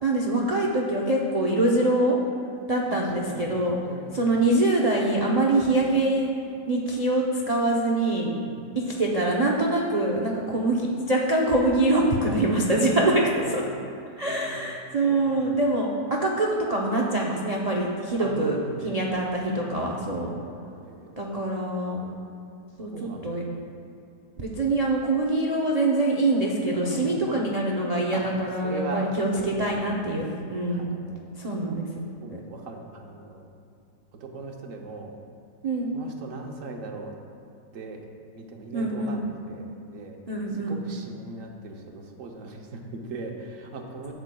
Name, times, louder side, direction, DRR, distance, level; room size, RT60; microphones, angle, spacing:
voice 1, 0.0-2.2 2.7-3.8 4.1-6.3 6.7-8.3 8.7-13.6 14.2-20.3 21.2-22.0 22.8-22.9 23.2-23.4 24.4-30.9 31.4-31.9 35.6-36.0 38.7-39.2 40.3-40.8, right 2 dB, 80° right, -3 dB, 0.3 m, -24 dB
voice 2, 2.9-4.2 5.5-5.7 8.3-8.6 10.4-10.6 11.9-13.8 14.2-14.7 15.0-15.5 18.2-19.1 19.5-20.6 20.8-21.2 21.9-22.1 22.9-23.8 26.7-27.4 28.1-28.2 28.5-29.1 29.3-30.1 30.7-31.2 32.2-33.4 34.2-35.1 35.9-37.1 37.7-38.0 38.4-40.2 40.6-44.1, right 3 dB, 55° right, 2 dB, 1.1 m, -39 dB
12.0 x 8.1 x 2.3 m, 2.6 s
omnidirectional pair, 1.8 m